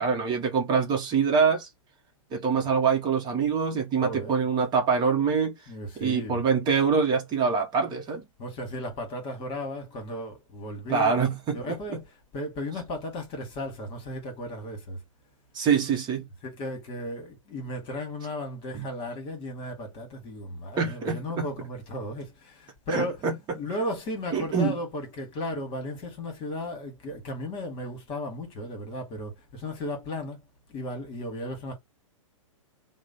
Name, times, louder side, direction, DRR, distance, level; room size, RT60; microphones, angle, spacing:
voice 1, 0.0-1.7 2.3-5.5 6.0-8.2 10.9-11.6 15.5-16.3 18.7-18.9 20.8-21.4 22.9-23.3 24.3-24.7, right 5 dB, 25° right, 0.9 m, -24 dB
voice 2, 4.0-4.4 5.7-6.4 8.4-11.2 11.5-15.0 16.4-30.4 30.7-31.7, left 1 dB, 30° left, 1.4 m, -35 dB
3.0 x 2.1 x 3.9 m
hypercardioid pair, 120°, 17 cm